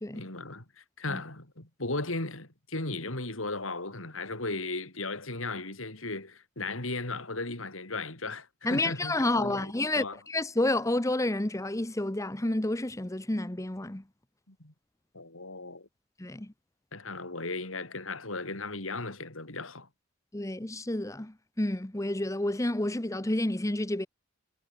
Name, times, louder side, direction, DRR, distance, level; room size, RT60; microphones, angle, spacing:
voice 1, 0.1-10.2 14.5-14.7 15.1-15.9 16.9-19.9, left 2 dB, 85° left, 4.9 m, -36 dB
voice 2, 8.6-14.0 16.2-16.5 20.3-24.1, left 1 dB, 15° left, 0.9 m, -30 dB
head